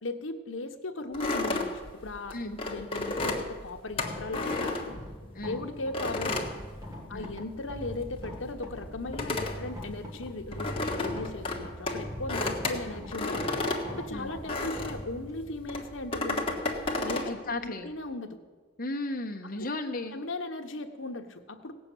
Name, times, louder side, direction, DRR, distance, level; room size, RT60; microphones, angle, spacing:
voice 1, 0.0-5.0 5.4-6.6 7.1-13.5 13.9-16.6 17.0-18.4 20.1-21.7, left 2 dB, 75° left, 5 dB, 1.2 m, -37 dB
sound 1, 1.1-5.4 5.9-7.4 7.7-15.1 15.7-17.3, left 2 dB, 25° left, 1.5 m, -32 dB
sound 2, 3.9-18.1, left 1 dB, 20° right, 1.6 m, -43 dB
voice 2, 17.3-17.9 18.8-20.2, left 2 dB, 45° left, 2 dB, 1.2 m, -35 dB
17.5 x 6.8 x 8.5 m, 1.4 s
head